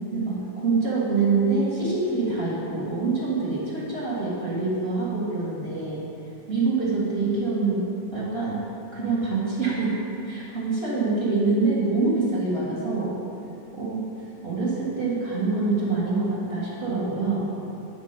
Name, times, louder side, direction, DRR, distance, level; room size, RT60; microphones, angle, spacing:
voice 1, 0.1-6.0 6.5-7.8 8.1-8.6 8.9-9.9 10.2-13.1 13.7-14.0 14.4-17.4, right 3 dB, 40° right, -8 dB, 1.5 m, -25 dB
8.9 x 3.6 x 5.2 m, 2.7 s
omnidirectional pair, 1.8 m